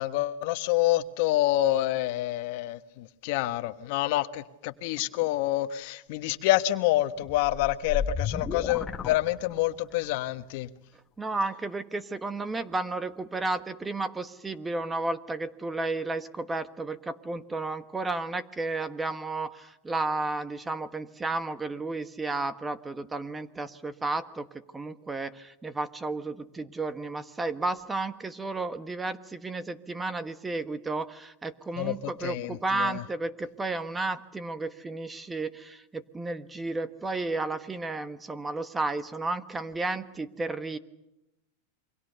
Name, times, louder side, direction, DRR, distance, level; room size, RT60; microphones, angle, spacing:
voice 1, 0.0-10.7 31.8-31.9 32.2-33.0, left 15 dB, 55° left, 11 dB, 1.3 m, -27 dB
sound 1, 7.2-9.9, left 6 dB, 20° left, 1.5 m, -33 dB
voice 2, 11.2-24.5 24.7-40.8, right 3 dB, 10° right, 13 dB, 1.3 m, -32 dB
28.5 x 24.0 x 6.8 m, 0.90 s
supercardioid pair, 140°, 0 cm